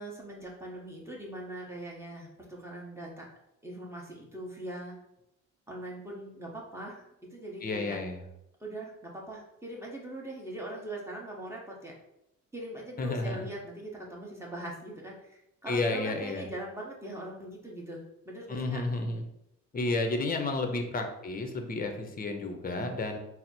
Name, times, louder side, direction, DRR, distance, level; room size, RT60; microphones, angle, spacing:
voice 1, 0.0-3.3 3.6-5.0 5.7-8.0 8.6-11.9 12.5-18.8 22.7-22.9, right 1 dB, 10° right, -3 dB, 1.1 m, -41 dB
voice 2, 7.6-8.2 13.0-13.5 15.7-16.5 18.5-19.2 19.7-23.2, left 2 dB, 30° left, 5 dB, 0.7 m, -31 dB
4.0 x 2.0 x 4.3 m, 0.83 s
cardioid pair, 90°, 30 cm